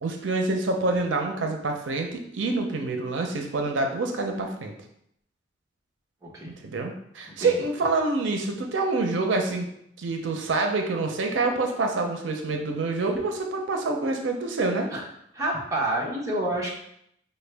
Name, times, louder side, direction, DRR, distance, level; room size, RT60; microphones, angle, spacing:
voice 1, 0.0-4.7 6.4-9.7 10.0-14.9, right 3 dB, 90° right, 3 dB, 0.5 m, -27 dB
voice 2, 6.2-6.5 7.4-7.5 14.9-15.0 15.3-16.7, right 1 dB, 15° right, -4 dB, 0.9 m, -28 dB
5.2 x 2.2 x 3.3 m, 0.72 s
head